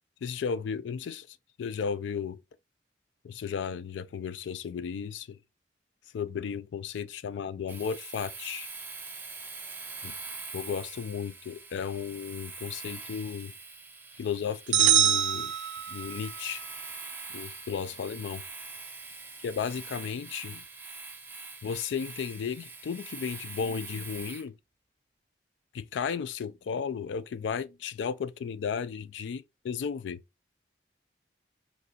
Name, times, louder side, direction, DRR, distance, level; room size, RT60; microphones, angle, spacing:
voice 1, 0.2-2.4 3.2-5.4 6.1-8.7 10.5-13.5 14.2-15.5 15.9-16.6 17.3-18.4 19.4-20.6 21.6-24.5 25.7-30.2, left 6 dB, 80° left, 0.3 m, -34 dB
Domestic sounds home sounds, 7.7-24.5, right 4 dB, 10° right, 0.3 m, -43 dB
sound 1, 14.7-16.3, right 11 dB, 85° right, 0.4 m, -24 dB
4.1 x 2.7 x 2.4 m
head